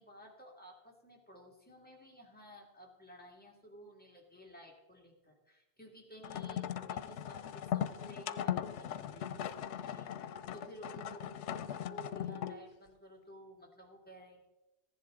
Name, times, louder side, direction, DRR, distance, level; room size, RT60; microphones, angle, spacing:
voice 1, 0.0-14.5, right 1 dB, 10° left, -1 dB, 2.0 m, -54 dB
sound 1, 6.2-12.7, left 10 dB, 90° left, 0.9 m, -39 dB
15.0 x 10.5 x 3.7 m, 0.97 s
omnidirectional pair, 1.2 m